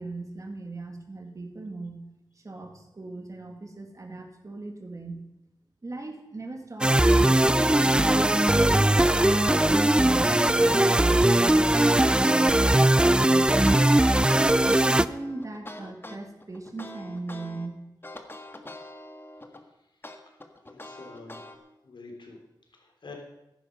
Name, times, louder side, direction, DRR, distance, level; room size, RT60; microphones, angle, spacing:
voice 1, 0.0-2.0 2.4-5.2 5.8-9.0 9.7-13.7 14.3-17.8, right 2 dB, 45° right, 4 dB, 2.4 m, -39 dB
sound 1, 6.8-15.1, right 1 dB, 10° right, 0.4 m, -20 dB
sound 2, 13.3-17.7 18.0-19.6 20.0-21.6, left 1 dB, 30° left, 1.6 m, -43 dB
voice 2, 20.6-22.4 22.7-23.1, left 3 dB, 80° left, 1 dB, 3.5 m, -47 dB
15.0 x 11.0 x 5.3 m, 0.92 s
wide cardioid pair, 80°, 8 cm